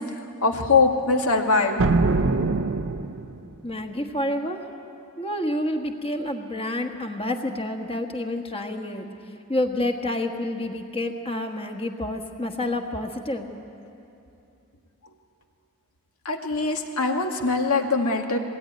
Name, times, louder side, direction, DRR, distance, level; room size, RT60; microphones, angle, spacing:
voice 1, 0.4-1.8 16.3-18.4, left 3 dB, 80° left, 3 dB, 2.0 m, -22 dB
sound 1, 1.8-3.5, right 3 dB, 65° right, 0.7 m, -23 dB
voice 2, 3.6-4.6 5.2-9.1 9.5-13.5, left 1 dB, 25° left, 3 dB, 1.4 m, -28 dB
20.5 x 17.5 x 9.5 m, 2.7 s
head